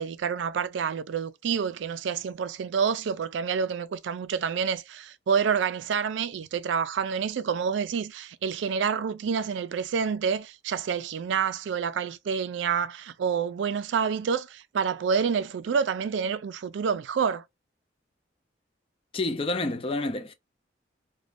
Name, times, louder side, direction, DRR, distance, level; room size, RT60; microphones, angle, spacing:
voice 1, 0.0-17.4, right 6 dB, 75° right, 0.3 m, -28 dB
voice 2, 19.1-20.3, left 2 dB, 30° left, 0.4 m, -29 dB
2.5 x 2.2 x 3.3 m
head